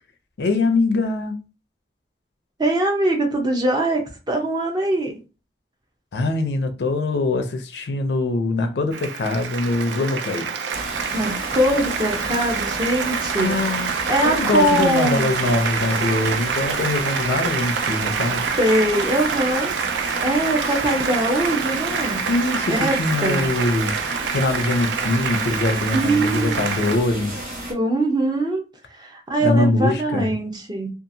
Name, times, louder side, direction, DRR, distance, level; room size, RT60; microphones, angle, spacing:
voice 1, 0.4-1.4 6.1-10.5 13.4-13.9 14.2-18.4 22.3-23.9 24.3-27.5 29.4-30.3, left 2 dB, 65° left, 0.4 m, -22 dB
voice 2, 2.6-5.1 11.1-15.4 18.6-19.7 20.2-22.2 22.7-23.5 25.9-26.6 27.7-28.6 28.9-30.9, right 1 dB, 25° right, 0.6 m, -22 dB
Applause, 8.9-27.0, right 6 dB, 80° right, 0.4 m, -26 dB
sound 1, 10.7-27.7, right 1 dB, 50° right, 1.0 m, -33 dB
2.7 x 2.4 x 2.6 m
head